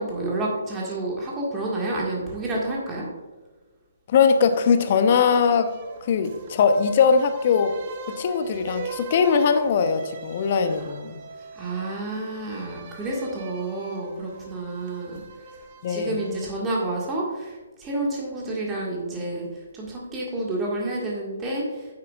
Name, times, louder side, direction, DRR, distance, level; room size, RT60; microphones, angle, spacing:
voice 1, 0.0-3.1 11.5-15.2 15.9-21.9, right 2 dB, 15° right, -3 dB, 1.8 m, -29 dB
voice 2, 4.1-5.7 6.1-7.7 8.2-11.2 15.8-16.2, left 6 dB, 40° left, 8 dB, 0.8 m, -20 dB
sound 1, 4.3-16.4, right 4 dB, 35° right, 1.1 m, -42 dB
10.5 x 8.5 x 2.4 m, 1.2 s
figure-of-eight pair, 135°, 0 cm